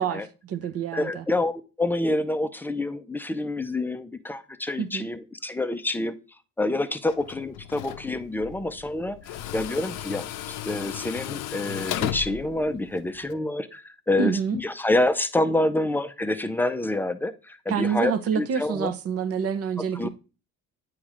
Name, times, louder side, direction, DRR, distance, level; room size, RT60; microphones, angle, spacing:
voice 1, 0.0-1.3 4.8-5.1 14.2-14.6 17.7-20.1, right 7 dB, 50° right, 0.7 m, -27 dB
voice 2, 0.9-6.2 6.6-18.9 19.9-20.1, left 2 dB, 5° left, 0.4 m, -27 dB
Tools, 7.1-13.3, left 12 dB, 90° left, 0.6 m, -35 dB
8.6 x 3.1 x 4.9 m
cardioid pair, 140°, 30 cm